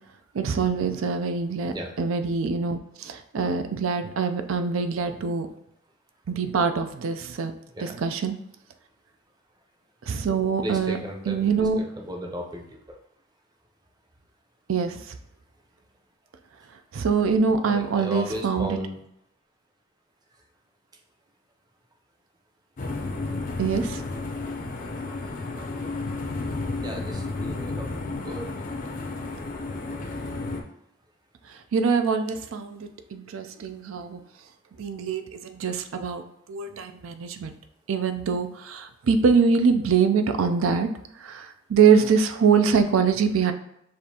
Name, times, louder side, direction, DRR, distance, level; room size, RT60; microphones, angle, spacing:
voice 1, 0.3-5.5 6.3-7.5 7.8-8.3 10.1-11.0 11.3-11.8 14.7-15.2 16.9-18.8 23.6-24.0 31.5-34.2 34.8-36.2 36.5-37.6 37.9-40.9 41.2-43.5, right 5 dB, 75° right, 8 dB, 0.4 m, -24 dB
voice 2, 10.6-13.0 17.6-19.0 26.7-28.6, equal, 20° right, 1 dB, 0.6 m, -35 dB
sound 1, 22.8-30.6, left 3 dB, 40° left, 0.5 m, -32 dB
6.4 x 2.5 x 2.8 m, 0.77 s
head